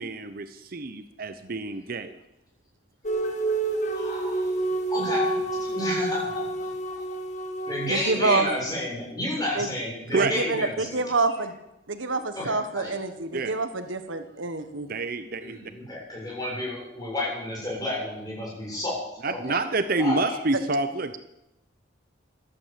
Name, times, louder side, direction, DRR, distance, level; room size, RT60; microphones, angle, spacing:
voice 1, 0.0-2.1 5.0-5.1 10.1-10.3 13.3-13.6 14.9-15.6 19.2-21.2, right 3 dB, 45° right, 10 dB, 0.8 m, -28 dB
sound 1, 3.0-8.3, right 2 dB, 40° left, 1.9 m, -29 dB
voice 2, 3.9-4.5 4.9-7.1 7.7-11.0 12.3-12.9 15.4-19.0 19.2-19.6 20.0-20.4, left 1 dB, 20° left, -4 dB, 7.4 m, -31 dB
voice 3, 7.9-8.5 9.5-9.7 10.2-11.5 11.9-14.9, right 3 dB, 80° right, 9 dB, 1.4 m, -27 dB
15.0 x 12.0 x 7.5 m, 0.90 s
head